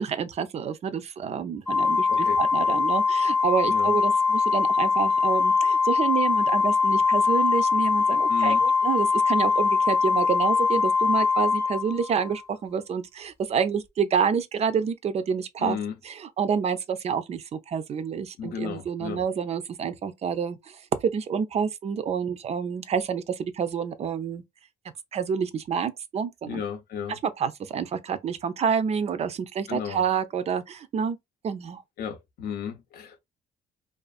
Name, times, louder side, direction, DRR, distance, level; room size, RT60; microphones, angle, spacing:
voice 1, 0.0-15.8 16.0-24.4 25.1-26.6 27.1-31.2 31.4-31.8, right 7 dB, 40° right, 0.4 m, -28 dB
Organ, 1.7-12.4, left 4 dB, 15° left, 0.7 m, -22 dB
voice 2, 8.3-8.6 15.6-15.9 18.4-19.2 26.5-27.2 29.7-30.0 32.0-33.2, left 7 dB, 65° left, 0.6 m, -34 dB
2.5 x 2.4 x 2.3 m
cardioid pair, 110°, 17 cm